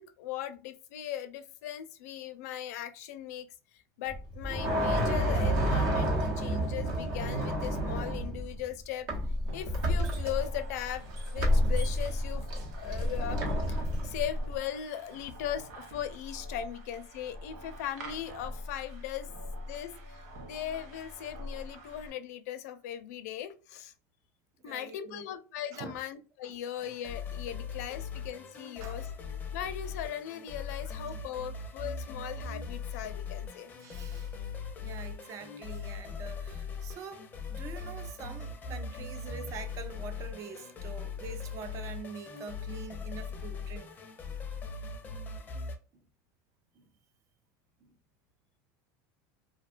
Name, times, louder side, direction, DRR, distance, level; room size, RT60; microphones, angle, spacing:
voice 1, 0.0-3.5 3.7-9.1 9.5-12.5 12.7-19.3 19.7-23.9 24.6-29.1 29.5-33.7, left 11 dB, 85° left, 0.4 m, -39 dB
sound 1, 4.1-8.6 9.1-14.6, equal, 55° right, 0.9 m, -30 dB
sound 2, 9.5-22.1, left 1 dB, 90° right, 0.8 m, -45 dB
voice 2, 24.6-25.3 25.7-26.0 26.4-26.5 28.8-29.1 31.1-31.2 33.8-34.4 34.8-43.9 45.9-46.0 46.8-46.9 47.8-47.9, right 5 dB, 40° right, 0.4 m, -45 dB
sound 3, 26.8-45.8, left 5 dB, 20° left, 0.5 m, -40 dB
2.6 x 2.2 x 2.4 m
supercardioid pair, 135°, 8 cm